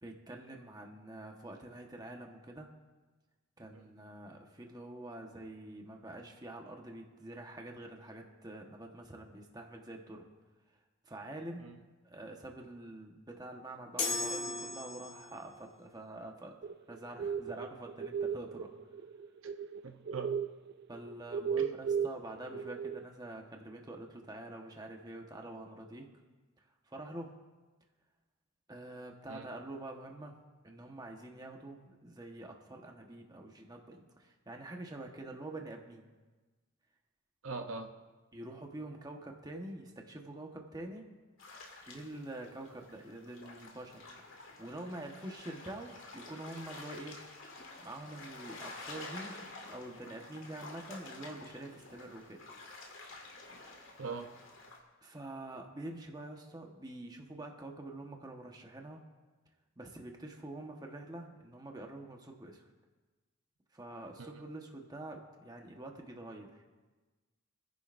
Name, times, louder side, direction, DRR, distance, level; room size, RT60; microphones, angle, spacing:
voice 1, 0.0-2.7 3.6-10.3 11.0-11.7 12.0-16.6 16.9-18.7 20.9-26.1 26.9-27.3 28.7-30.3 30.6-36.1 38.3-41.0 41.9-44.0 44.6-47.2 47.8-49.4 49.7-52.4 55.0-59.0 59.8-62.7 63.7-66.6, right 1 dB, 20° right, 2 dB, 1.3 m, -46 dB
sound 1, 14.0-15.5, left 3 dB, 30° left, 2.5 m, -36 dB
sound 2, 16.6-19.8 20.1-23.0, right 7 dB, 55° right, 0.3 m, -35 dB
voice 2, 19.8-20.4 21.6-21.7 29.3-29.5 37.4-37.9 54.0-54.3 64.2-64.4, right 4 dB, 85° right, 5 dB, 0.8 m, -42 dB
sound 3, 41.4-54.8, left 2 dB, 75° left, 2.3 m, -50 dB
29.0 x 10.5 x 2.6 m, 1.3 s
head